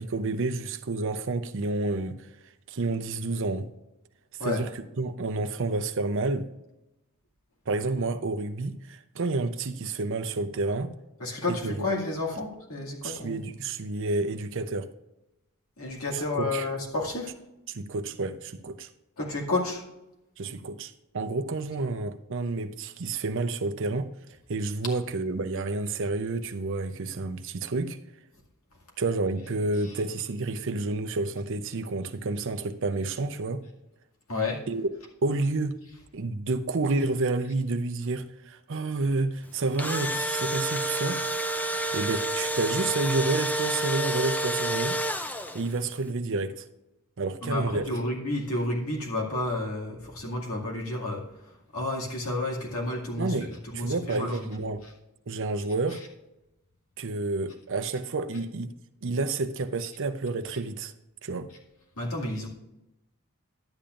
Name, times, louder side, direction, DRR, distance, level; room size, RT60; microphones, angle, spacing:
voice 1, 0.0-2.3 2.7-3.7 4.4-6.5 7.7-10.9 11.5-11.9 13.0-14.9 16.3-16.7 17.7-18.9 20.4-24.1 24.5-28.0 29.0-33.6 34.7-34.9 35.2-35.8 36.1-41.2 41.9-45.0 45.5-46.6 47.2-47.9 53.2-54.8 55.3-56.0 57.0-58.7 59.0-60.9 61.2-61.5, right 3 dB, 60° right, 0.6 m, -29 dB
voice 2, 11.2-13.4 15.8-17.3 19.2-19.8 34.3-34.6 47.4-51.2 51.7-54.4 62.0-62.5, left 2 dB, 70° left, 2.3 m, -31 dB
Engine / Drill, 39.5-45.8, right 1 dB, 5° left, 0.4 m, -29 dB
11.5 x 8.6 x 2.5 m
head